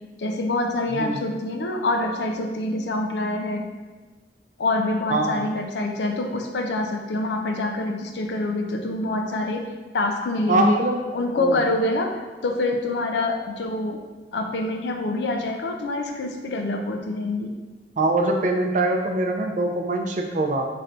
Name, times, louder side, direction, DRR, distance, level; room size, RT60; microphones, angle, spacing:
voice 1, 0.2-3.7 4.6-9.7 9.9-10.8 11.1-14.0 14.3-17.5, left 2 dB, 65° left, 3 dB, 0.4 m, -26 dB
voice 2, 5.1-5.4 10.5-11.0 11.4-11.6 18.0-20.7, right 2 dB, 45° right, 2 dB, 0.4 m, -23 dB
3.2 x 2.5 x 4.3 m, 1.3 s
head